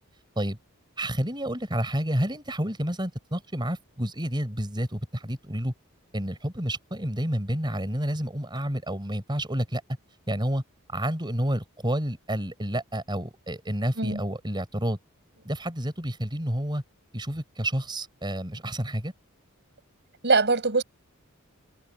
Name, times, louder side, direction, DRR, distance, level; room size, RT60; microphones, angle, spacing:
voice 1, 1.0-5.7 6.1-9.8 10.3-10.6 10.9-15.0 15.4-16.8 17.1-19.1, right 1 dB, 20° right, 4.3 m, -29 dB
voice 2, 20.2-20.8, right 4 dB, 55° right, 5.0 m, -22 dB
head